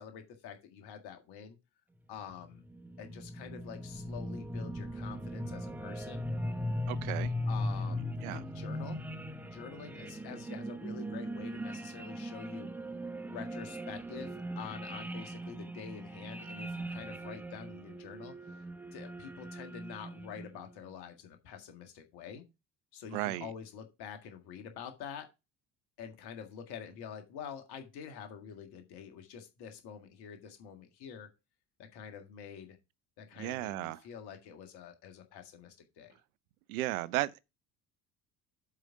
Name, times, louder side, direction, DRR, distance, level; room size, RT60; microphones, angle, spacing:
voice 1, 0.0-1.6 2.1-2.6 3.0-6.2 7.5-9.0 9.4-18.7 18.9-22.4 22.9-25.3 26.0-31.3 31.8-32.8 33.2-36.1, left 7 dB, 50° left, 1.9 m, -47 dB
sound 1, 2.3-20.7, equal, 5° right, 0.5 m, -39 dB
voice 2, 6.9-7.3 8.2-8.4 23.1-23.5 33.4-34.0 36.7-37.4, right 17 dB, 60° right, 0.6 m, -34 dB
7.5 x 4.9 x 5.0 m
figure-of-eight pair, 60°, 49 cm